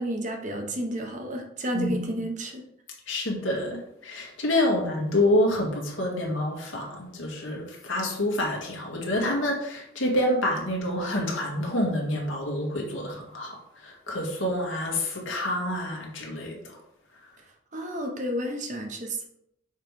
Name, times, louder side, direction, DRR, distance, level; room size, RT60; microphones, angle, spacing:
voice 1, 0.0-2.6 17.7-19.2, equal, 40° right, 3 dB, 1.0 m, -31 dB
voice 2, 1.7-2.2 3.1-16.8, left 1 dB, 85° left, -1 dB, 1.9 m, -27 dB
6.5 x 3.2 x 5.2 m, 0.75 s
head